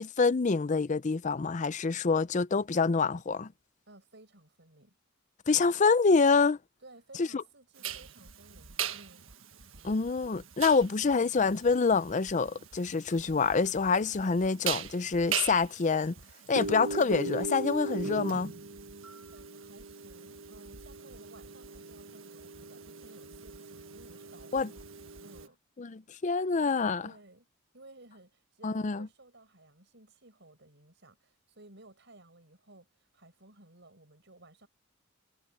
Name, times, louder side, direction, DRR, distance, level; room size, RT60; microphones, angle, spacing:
voice 1, 0.0-3.5 5.5-6.6 7.2-7.4 9.8-16.1 16.5-18.5 24.5-24.7 25.8-27.1 28.6-29.1, left 4 dB, 35° left, 0.5 m, -26 dB
voice 2, 3.9-5.0 5.5-5.8 6.8-9.3 19.3-24.8 25.2-25.6 27.0-27.5 27.7-34.7, right 2 dB, 60° right, 7.5 m, -57 dB
sound 1, 7.8-25.5, right 5 dB, 80° right, 1.6 m, -39 dB
head